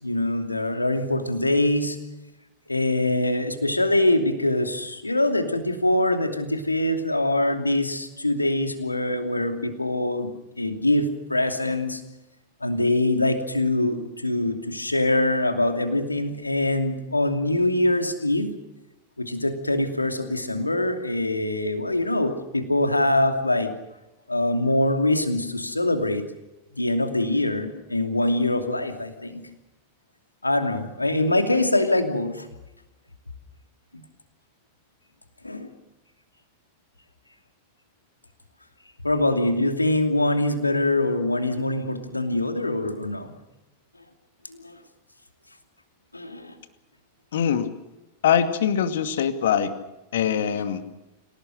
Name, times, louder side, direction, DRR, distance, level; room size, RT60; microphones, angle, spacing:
voice 1, 0.0-2.0 2.7-10.3 10.6-12.0 12.6-18.5 19.2-23.7 24.3-26.2 26.7-29.4 30.4-32.5 35.4-35.7 39.0-43.3 44.5-44.8 46.1-46.5, left 1 dB, 85° left, 6 dB, 2.8 m, -24 dB
voice 2, 47.3-47.7 48.2-49.7 50.1-50.8, left 8 dB, 60° left, 9 dB, 2.3 m, -22 dB
28.0 x 18.0 x 6.6 m, 1.0 s
figure-of-eight pair, 90°, 0 cm